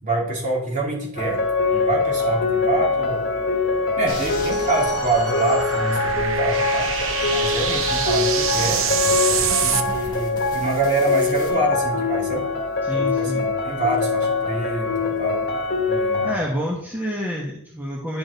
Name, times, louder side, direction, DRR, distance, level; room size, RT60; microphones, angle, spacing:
voice 1, 0.0-1.4 1.7-3.3 4.0-6.9 7.3-8.8 9.6-12.4 12.9-15.4 15.9-16.3, right 2 dB, 35° right, -3 dB, 3.0 m, -25 dB
sound 1, 1.2-16.4, left 3 dB, 50° left, 1.3 m, -23 dB
sound 2, 2.3-9.8, right 8 dB, 65° right, 0.7 m, -27 dB
sound 3, 4.1-11.5, left 2 dB, 20° left, 3.2 m, -35 dB
voice 2, 12.8-13.4 16.2-18.2, equal, 10° right, -3 dB, 1.2 m, -28 dB
10.5 x 6.3 x 4.1 m, 0.70 s
head